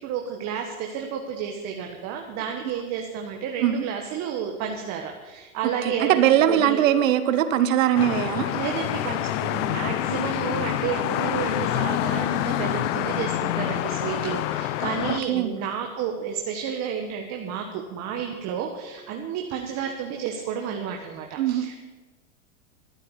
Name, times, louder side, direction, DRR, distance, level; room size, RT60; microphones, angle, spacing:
voice 1, 0.0-6.8 8.4-21.8, right 7 dB, 40° right, 2 dB, 1.6 m, -31 dB
voice 2, 5.8-8.5 15.1-15.6 21.4-21.8, right 11 dB, 70° right, 12 dB, 1.3 m, -21 dB
sound 1, 7.9-15.2, left 14 dB, 60° left, 0.8 m, -27 dB
12.5 x 8.8 x 8.2 m, 1.3 s
hypercardioid pair, 120°, 41 cm